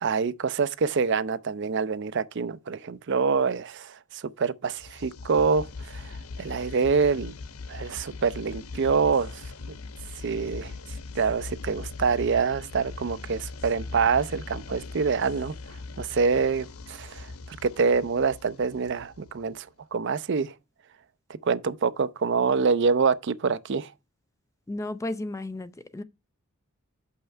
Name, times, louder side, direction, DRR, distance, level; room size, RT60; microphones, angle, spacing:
voice 1, 0.0-7.3 7.7-9.4 10.2-10.7 11.1-15.5 16.0-20.5 21.4-23.9, right 5 dB, 55° right, 0.5 m, -26 dB
sound 1, 4.7-19.6, left 3 dB, 80° left, 0.6 m, -40 dB
voice 2, 24.7-26.0, left 1 dB, 15° left, 0.3 m, -33 dB
6.5 x 5.6 x 4.4 m
head